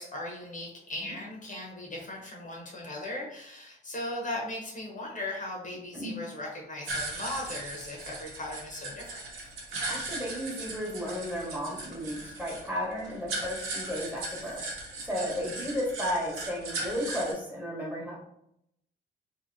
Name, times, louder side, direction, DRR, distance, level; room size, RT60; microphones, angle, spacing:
voice 1, 0.0-9.2 15.2-15.5, left 1 dB, 40° left, -1 dB, 0.8 m, -38 dB
sound 1, 6.9-17.3, right 2 dB, 90° right, 0.8 m, -38 dB
voice 2, 9.9-14.6 15.0-18.2, equal, 10° right, -4 dB, 1.1 m, -34 dB
2.7 x 2.7 x 2.6 m, 0.76 s
cardioid pair, 90°, 20 cm